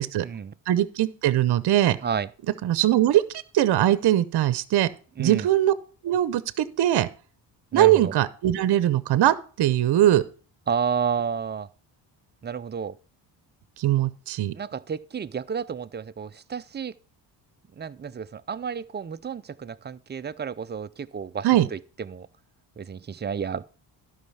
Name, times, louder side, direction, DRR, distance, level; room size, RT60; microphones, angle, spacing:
voice 1, 0.0-0.5 2.0-2.3 5.2-5.5 7.7-8.1 10.7-11.7 12.4-13.0 14.5-16.9 17.8-22.3 22.8-23.6, right 7 dB, 25° right, 0.4 m, -31 dB
voice 2, 0.7-2.0 2.6-3.2 3.5-4.9 5.2-5.7 6.0-7.1 7.7-10.2 13.8-14.5 21.4-21.7, right 13 dB, 60° right, 0.8 m, -21 dB
12.0 x 5.5 x 5.5 m
cardioid pair, 85°, 45 cm